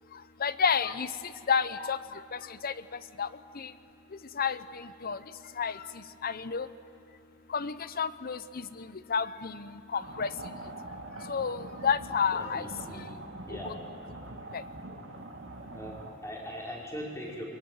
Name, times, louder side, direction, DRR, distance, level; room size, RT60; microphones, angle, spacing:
voice 1, 0.4-1.1 1.5-2.0 2.6-2.7 3.2-3.3 3.6-3.7 4.4-4.6 5.0-5.2 5.6-5.7 6.2-6.7 7.5-8.4 9.1-10.3 11.3-12.6 13.6-13.7 14.5-14.6, left 6 dB, 50° left, 14 dB, 0.8 m, -29 dB
sound 1, 10.0-16.1, right 2 dB, 70° right, 2.2 m, -43 dB
voice 2, 12.3-13.1 13.4-13.8 15.7-17.4, equal, 15° left, -3 dB, 5.1 m, -40 dB
24.0 x 22.0 x 9.4 m, 2.6 s
head